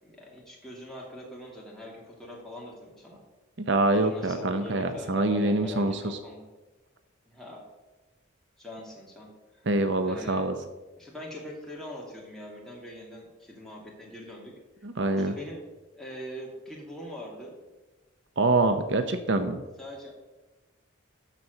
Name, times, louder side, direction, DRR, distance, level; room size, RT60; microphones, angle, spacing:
voice 1, 0.0-3.2 3.9-6.5 7.3-7.6 8.6-9.7 10.0-10.6 11.0-14.5 15.2-15.6 15.9-17.5 19.8-20.1, left 1 dB, ahead, -4 dB, 2.4 m, -42 dB
voice 2, 3.7-6.2 9.7-10.6 14.8-15.3 18.4-19.6, right 2 dB, 60° right, 8 dB, 0.7 m, -25 dB
12.0 x 4.2 x 7.9 m, 1.1 s
head